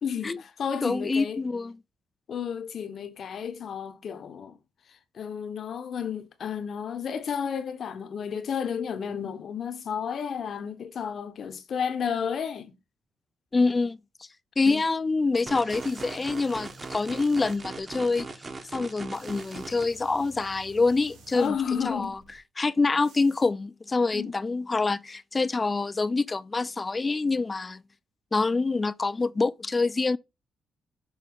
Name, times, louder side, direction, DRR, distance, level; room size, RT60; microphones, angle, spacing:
voice 1, 0.0-1.4 2.3-4.6 4.9-12.7 14.6-14.8 21.3-22.1 24.1-24.3, left 7 dB, 55° left, 1.0 m, -32 dB
voice 2, 0.8-1.8 13.5-14.0 14.6-18.3 18.7-21.6 21.9-22.2 22.6-27.8 28.3-30.2, left 3 dB, 25° left, 0.3 m, -26 dB
sound 1, 15.5-19.8, right 3 dB, 30° right, 1.0 m, -40 dB
sound 2, 15.7-17.8 19.1-22.4 23.0-23.5, right 2 dB, 85° right, 2.6 m, -53 dB
6.3 x 4.0 x 3.7 m
cardioid pair, 90°, 0 cm